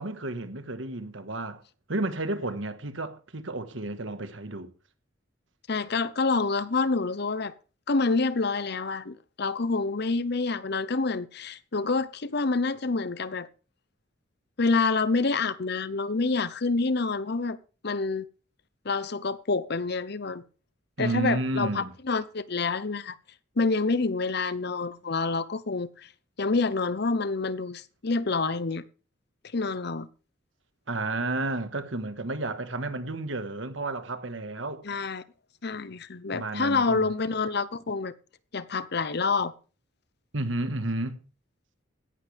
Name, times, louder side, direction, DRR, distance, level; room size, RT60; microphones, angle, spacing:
voice 1, 0.0-1.6 1.9-4.7 21.0-21.9 30.9-34.8 36.3-37.1 40.3-41.2, right 2 dB, 75° right, 1.6 m, -31 dB
voice 2, 5.7-7.5 7.9-13.5 14.6-17.6 17.8-18.2 18.8-20.4 21.0-23.2 23.6-26.1 26.4-28.8 29.5-30.1 34.8-35.2 35.6-38.1 38.5-39.5, left 3 dB, 55° left, 0.8 m, -27 dB
17.0 x 12.0 x 3.5 m
head